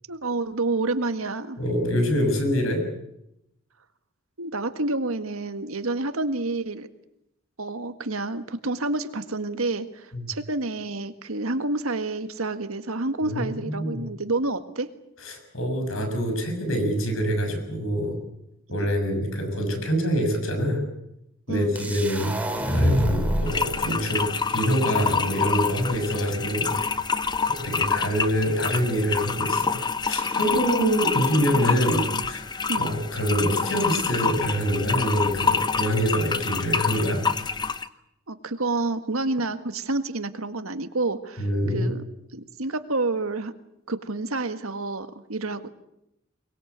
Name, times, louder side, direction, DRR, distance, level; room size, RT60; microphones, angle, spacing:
voice 1, 0.1-1.6 4.4-6.9 7.6-14.9 18.8-18.9 21.5-21.8 30.8-31.0 32.7-32.9 38.3-42.0 42.3-43.5 43.9-45.7, right 2 dB, 80° right, 9 dB, 1.7 m, -29 dB
voice 2, 1.6-2.8 10.1-10.3 13.2-14.1 15.2-18.2 18.7-20.8 21.5-26.8 27.5-32.4 32.8-37.2 41.4-42.0, equal, 70° left, 5 dB, 6.7 m, -25 dB
sound 1, 21.8-23.7, equal, 5° right, 2.5 m, -25 dB
sound 2, 23.5-37.9, left 5 dB, 20° left, 0.8 m, -27 dB
23.0 x 21.5 x 8.2 m, 0.83 s
head